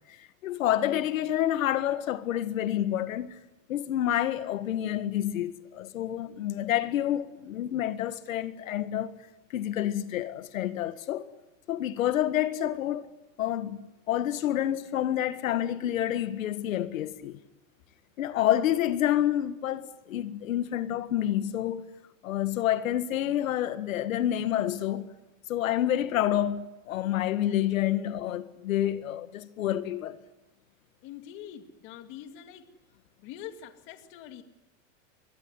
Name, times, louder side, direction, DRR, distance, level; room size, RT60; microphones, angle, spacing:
voice 1, 0.1-3.4 3.7-9.1 9.5-11.3 11.7-13.0 13.4-17.4 18.2-21.9 22.2-25.1 25.5-30.2, left 12 dB, 90° left, 1.8 m, -28 dB
voice 2, 31.0-32.7 33.2-34.4, left 10 dB, 30° left, 2.2 m, -44 dB
26.5 x 23.0 x 9.7 m
supercardioid pair, 175°, 39 cm